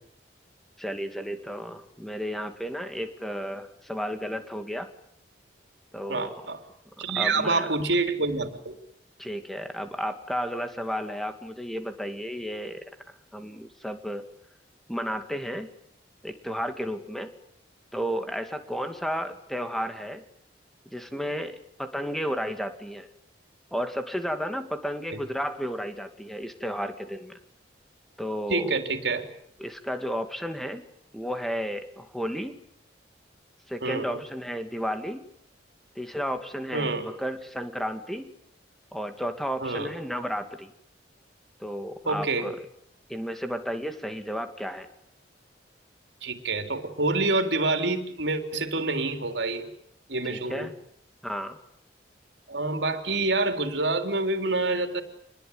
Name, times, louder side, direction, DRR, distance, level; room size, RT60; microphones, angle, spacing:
voice 1, 0.8-4.9 5.9-6.3 7.1-7.7 9.2-12.9 13.3-14.3 14.9-15.7 16.2-17.3 17.9-20.2 20.9-23.1 23.7-27.4 28.2-28.7 29.6-30.9 31.1-32.6 33.7-35.3 36.0-38.3 38.9-40.7 41.6-42.7 43.1-44.9 50.2-50.7 51.2-51.6, equal, ahead, 7 dB, 2.3 m, -33 dB
voice 2, 6.1-6.6 7.0-8.8 25.1-25.2 28.5-29.3 33.8-34.2 36.7-37.1 39.6-39.9 42.1-42.5 46.2-49.7 50.1-50.7 52.5-55.0, right 3 dB, 70° right, 7 dB, 3.8 m, -27 dB
27.0 x 20.5 x 9.6 m, 0.70 s
head